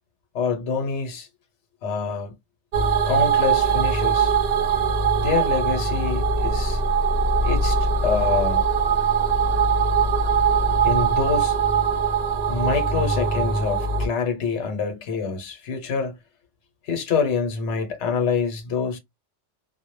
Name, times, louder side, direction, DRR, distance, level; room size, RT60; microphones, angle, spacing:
voice 1, 0.3-1.3 1.8-2.3 3.0-4.4 5.2-6.8 7.4-8.7 10.8-11.6 12.5-16.2 16.8-19.0, left 5 dB, 70° left, 1.0 m, -26 dB
sound 1, 2.7-14.1, right 5 dB, 55° right, 0.4 m, -21 dB
2.1 x 2.0 x 2.9 m
omnidirectional pair, 1.2 m